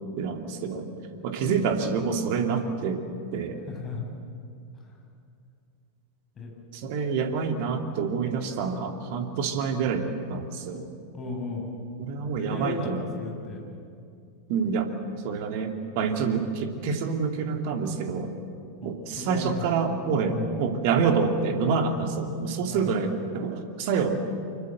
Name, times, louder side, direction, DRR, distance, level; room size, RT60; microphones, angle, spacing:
voice 1, 0.2-0.9 1.2-3.0 3.3-3.6 6.7-10.9 12.0-13.1 14.5-14.9 15.2-18.3 18.8-24.2, right 5 dB, 45° right, 5 dB, 2.5 m, -27 dB
voice 2, 3.7-4.0 6.4-6.5 11.1-11.7 12.2-13.6 18.8-19.5 20.2-20.5 22.7-22.9, left 3 dB, 25° left, -1 dB, 7.6 m, -35 dB
25.0 x 22.5 x 8.0 m, 2.4 s
figure-of-eight pair, 90°, 0 cm